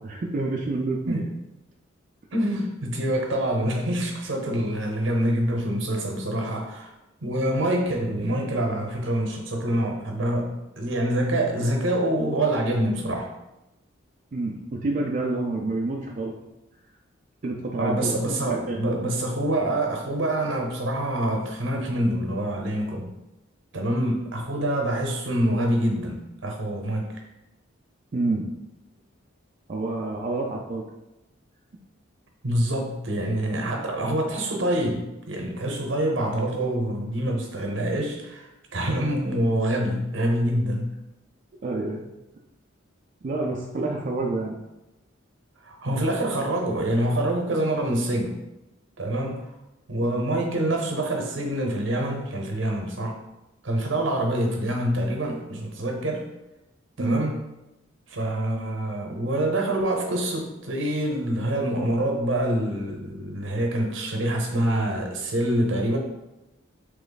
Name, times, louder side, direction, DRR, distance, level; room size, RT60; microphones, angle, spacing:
voice 1, 0.0-1.3 14.3-16.3 17.4-18.1 18.5-18.8 28.1-28.4 29.7-30.8 41.6-42.0 43.2-44.6 50.0-50.2 57.0-57.2, right 2 dB, 40° right, -2 dB, 0.4 m, -28 dB
voice 2, 2.3-6.9 7.2-13.3 17.8-23.1 23.7-27.2 32.4-40.9 45.6-48.3 49.0-49.5 49.9-53.2 53.6-56.2 57.0-57.4 58.1-66.0, right 1 dB, 75° right, 2 dB, 0.8 m, -26 dB
3.1 x 3.0 x 3.9 m, 0.95 s
head